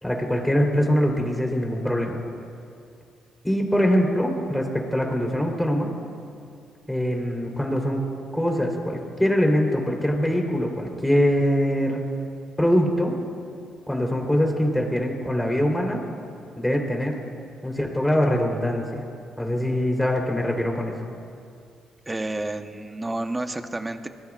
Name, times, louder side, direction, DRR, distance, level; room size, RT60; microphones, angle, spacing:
voice 1, 0.0-2.2 3.4-5.9 6.9-8.1 8.3-12.0 12.6-13.2 13.9-16.0 16.6-17.2 17.6-19.0 19.4-21.0, equal, 5° left, 0 dB, 3.8 m, -23 dB
voice 2, 22.1-24.1, right 2 dB, 15° right, 7 dB, 1.1 m, -30 dB
25.0 x 21.5 x 2.5 m, 2.4 s
cardioid pair, 90°, 0 cm